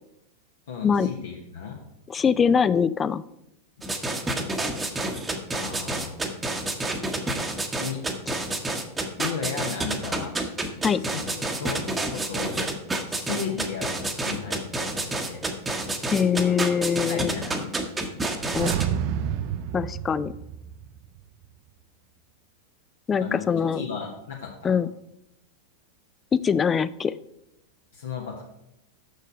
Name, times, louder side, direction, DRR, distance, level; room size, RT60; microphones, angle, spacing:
voice 1, 0.7-1.8 5.5-6.1 7.8-8.0 9.2-10.3 10.9-12.6 13.1-15.4 16.4-16.6 17.1-17.8 23.2-24.8 27.9-28.4, left 6 dB, 60° left, 0 dB, 1.0 m, -35 dB
voice 2, 2.1-3.2 10.8-11.0 16.1-17.3 18.5-18.7 19.7-20.3 23.1-23.8 24.6-24.9 26.3-27.1, left 6 dB, 20° left, 17 dB, 0.3 m, -23 dB
sound 1, 3.8-18.9, right 2 dB, 10° right, 0.9 m, -29 dB
sound 2, 18.3-21.2 21.4-21.5, right 9 dB, 45° right, 0.5 m, -30 dB
6.6 x 6.5 x 5.0 m, 0.82 s
figure-of-eight pair, 90°, 0 cm